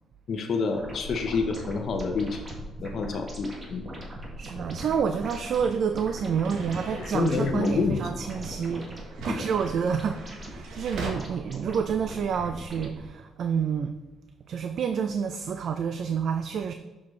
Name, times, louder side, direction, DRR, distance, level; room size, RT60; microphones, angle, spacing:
voice 1, 0.3-2.4 2.8-3.9 6.9-8.0 9.3-9.4, left 4 dB, 55° left, 3 dB, 0.8 m, -28 dB
sound 1, 0.7-13.1, right 1 dB, 35° right, 1.7 m, -40 dB
voice 2, 4.4-14.0 14.5-16.7, right 7 dB, 65° right, 8 dB, 0.4 m, -29 dB
sound 2, 5.3-11.1, right 3 dB, 85° right, 1.3 m, -43 dB
6.4 x 5.8 x 3.2 m, 1.2 s
cardioid pair, 90°, 0 cm